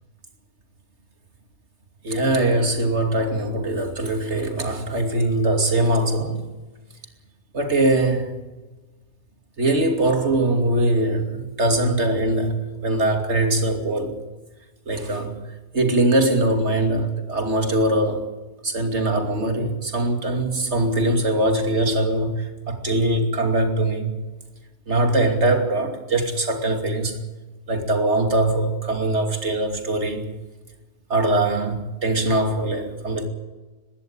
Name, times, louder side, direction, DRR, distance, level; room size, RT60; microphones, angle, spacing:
voice 1, 2.0-6.4 7.5-8.3 9.6-14.1 14.9-15.4 15.7-18.3 18.6-24.2 24.9-27.2 27.7-30.3 31.1-33.3, right 1 dB, 85° right, 3.1 m, -22 dB
21.5 x 15.5 x 8.9 m
omnidirectional pair, 1.1 m